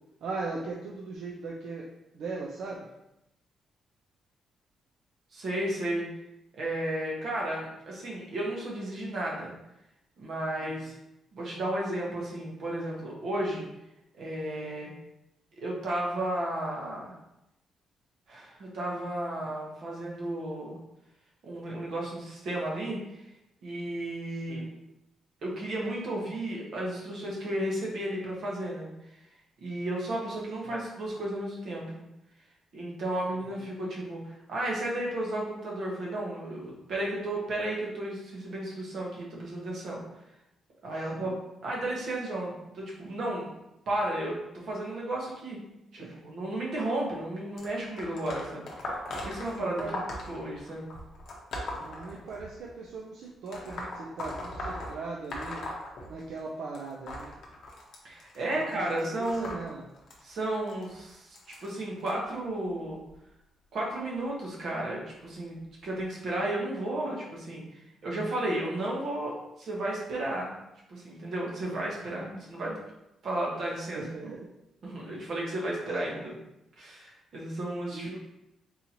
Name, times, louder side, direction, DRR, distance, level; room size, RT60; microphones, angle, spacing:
voice 1, 0.2-1.9 2.1-2.9 10.6-10.9 19.4-19.5 24.3-24.7 30.6-30.8 33.3-33.6 41.0-41.4 46.0-46.3 49.6-50.4 51.8-55.6 56.1-57.3 58.5-59.9 73.9-74.5 76.0-76.3 77.9-78.2, right 3 dB, 65° right, -2 dB, 0.4 m, -39 dB
voice 2, 5.3-6.1 6.6-9.5 10.2-10.9 11.3-13.7 14.2-14.9 15.6-17.1 18.3-20.8 21.4-23.0 23.6-24.6 25.4-28.9 29.6-32.0 32.7-40.0 40.8-41.3 41.6-43.5 43.9-45.6 45.9-49.8 50.3-50.9 58.0-59.6 60.2-63.0 63.7-70.6 70.9-72.8 73.2-74.0 74.8-76.3 76.8-78.2, right 1 dB, 50° right, -3 dB, 1.0 m, -33 dB
sound 1, 47.6-52.7 53.5-56.5 56.7-62.1 62.9-63.1 64.2-64.3 65.2-65.3 66.0-66.1, left 1 dB, 50° left, 0.7 m, -39 dB
4.0 x 2.8 x 2.9 m, 0.87 s
cardioid pair, 180°, 0 cm